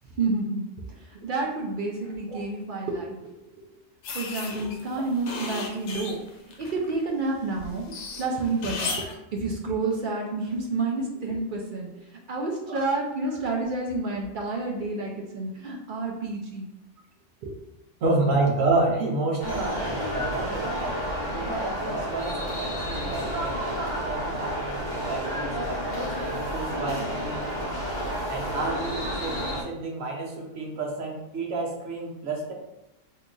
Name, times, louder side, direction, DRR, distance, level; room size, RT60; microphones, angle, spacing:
voice 1, 0.2-0.7 1.0-3.6 4.1-6.2 6.6-7.9 8.2-9.0 9.3-16.7 17.4-17.5 26.8-27.0, right 3 dB, 65° right, 0 dB, 0.5 m, -29 dB
sound 1, 4.0-7.0 7.3-9.2, left 4 dB, 85° left, 1.0 m, -35 dB
voice 2, 18.0-20.7 21.3-23.6 24.0-27.5 28.3-32.5, right 2 dB, 80° right, -1 dB, 1.2 m, -29 dB
sound 2, 19.4-29.6, equal, 45° left, 0.7 m, -30 dB
2.8 x 2.3 x 3.7 m, 0.90 s
omnidirectional pair, 1.3 m